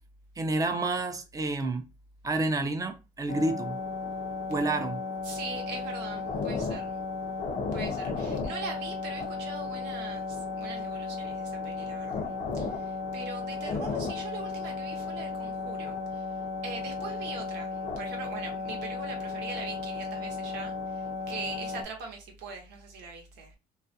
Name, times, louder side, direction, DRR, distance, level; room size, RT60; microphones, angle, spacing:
voice 1, 0.4-1.8 2.2-3.8 4.5-5.0, right 2 dB, 20° right, 0.4 m, -29 dB
sound 1, 3.3-21.8, left 4 dB, 50° left, 0.6 m, -34 dB
voice 2, 5.2-6.9 7.7-16.2 16.6-23.5, right 4 dB, 90° right, 0.9 m, -42 dB
2.3 x 2.1 x 2.7 m
cardioid pair, 110°, 17 cm